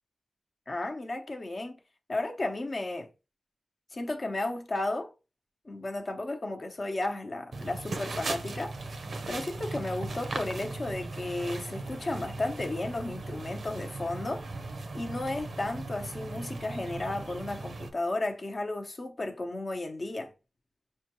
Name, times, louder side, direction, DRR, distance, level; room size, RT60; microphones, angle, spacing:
voice 1, 0.7-1.8 2.1-3.1 3.9-5.1 5.6-8.8 9.3-14.4 14.9-20.3, left 2 dB, 45° left, 0.8 m, -33 dB
sound 1, 7.5-17.9, right 3 dB, 70° right, 0.6 m, -38 dB
6.1 x 2.3 x 2.9 m
wide cardioid pair, 90°, 0 cm